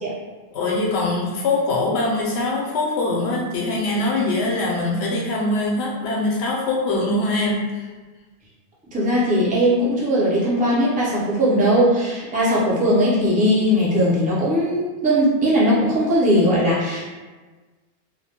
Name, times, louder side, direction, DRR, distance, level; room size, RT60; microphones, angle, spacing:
voice 1, 0.5-7.9, left 2 dB, 80° left, -2 dB, 0.9 m, -23 dB
voice 2, 8.9-17.0, equal, 15° right, -7 dB, 0.3 m, -19 dB
2.2 x 2.1 x 2.7 m, 1.3 s
omnidirectional pair, 1.1 m